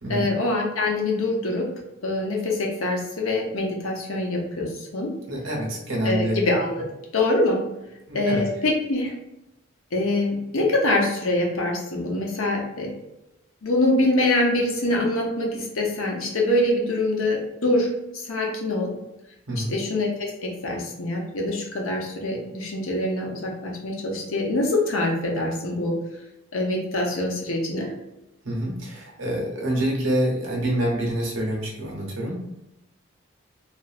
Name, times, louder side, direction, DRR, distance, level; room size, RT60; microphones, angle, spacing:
voice 1, 0.1-1.7 2.0-5.1 6.0-6.7 7.1-7.6 8.1-9.1 9.9-12.9 13.6-17.9 18.2-18.9 19.7-26.0 26.5-27.9, left 2 dB, 85° left, 0 dB, 0.7 m, -24 dB
voice 2, 5.3-6.4 6.8-6.9 8.1-8.4 19.5-19.7 28.4-32.4, right 1 dB, 75° right, -1 dB, 0.9 m, -26 dB
3.1 x 2.5 x 2.4 m, 0.91 s
head